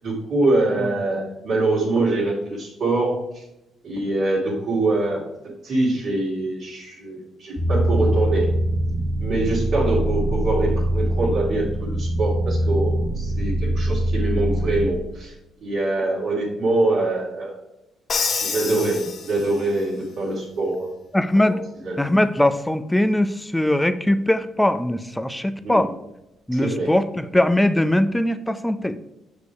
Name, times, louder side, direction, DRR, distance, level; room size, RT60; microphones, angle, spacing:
voice 1, 0.0-3.4 3.8-8.5 9.2-15.3 15.6-17.5 18.4-20.9 21.3-21.6 21.8-22.0 25.6-25.9 26.5-27.0, right 2 dB, 65° right, -8 dB, 2.6 m, -24 dB
sound 1, 7.6-14.9, right 1 dB, 20° right, 1.5 m, -23 dB
Crash cymbal, 18.1-19.8, left 5 dB, 50° left, 1.1 m, -27 dB
voice 2, 21.1-21.6 22.0-25.9 26.5-29.0, left 1 dB, 5° left, 11 dB, 0.6 m, -21 dB
6.6 x 5.2 x 4.6 m, 0.90 s
cardioid pair, 90°, 0 cm